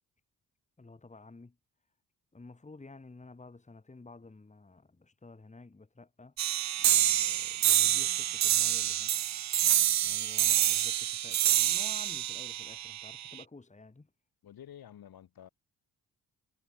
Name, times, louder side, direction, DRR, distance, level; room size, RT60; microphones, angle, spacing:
voice 1, 0.8-1.6 2.3-6.3 6.8-9.1 10.0-14.1, left 3 dB, 20° left, 2.3 m, -52 dB
sound 1, 6.4-13.4, right 12 dB, 50° right, 0.4 m, -27 dB
voice 2, 14.4-15.5, left 10 dB, 80° left, 7.0 m, -50 dB
cardioid pair, 80°, 36 cm